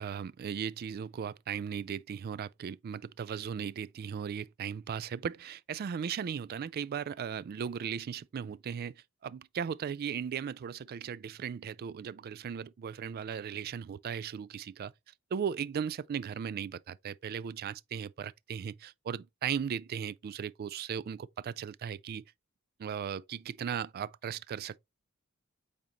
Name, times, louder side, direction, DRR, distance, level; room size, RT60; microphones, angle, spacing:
voice 1, 0.0-14.9 15.3-22.2 22.8-24.8, right 7 dB, 45° right, 0.3 m, -37 dB
8.6 x 4.0 x 3.0 m
head